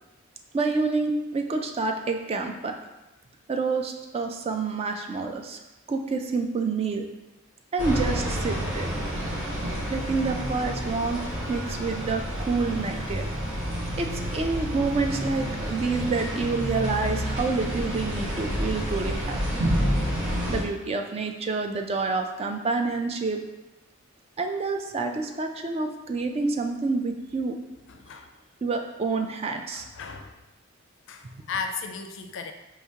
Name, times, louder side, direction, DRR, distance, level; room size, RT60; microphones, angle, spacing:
voice 1, 0.5-2.7 3.5-5.6 5.9-7.0 7.7-8.9 9.9-11.2 11.5-13.2 14.0-19.4 20.5-23.4 24.4-27.6 28.6-29.9, right 3 dB, 30° right, 4 dB, 0.3 m, -28 dB
sound 1, 7.8-20.6, equal, 70° right, 1.2 m, -29 dB
voice 2, 27.9-28.3 29.7-30.4 31.1-32.5, left 5 dB, 65° left, 6 dB, 0.4 m, -35 dB
4.9 x 2.8 x 2.8 m, 1.0 s
head